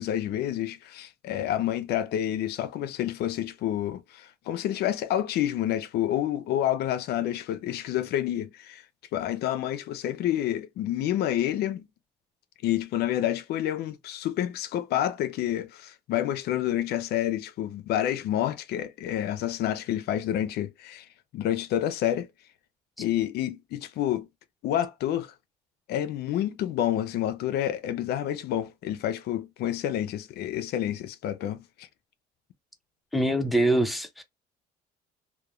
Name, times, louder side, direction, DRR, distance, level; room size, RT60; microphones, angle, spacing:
voice 1, 0.0-8.8 9.1-11.9 12.6-21.1 21.3-22.3 23.0-24.3 24.6-25.3 25.9-31.6, left 12 dB, 70° left, 0.5 m, -28 dB
voice 2, 33.1-34.2, right 1 dB, ahead, 0.5 m, -24 dB
2.9 x 2.1 x 2.3 m
cardioid pair, 110°, 17 cm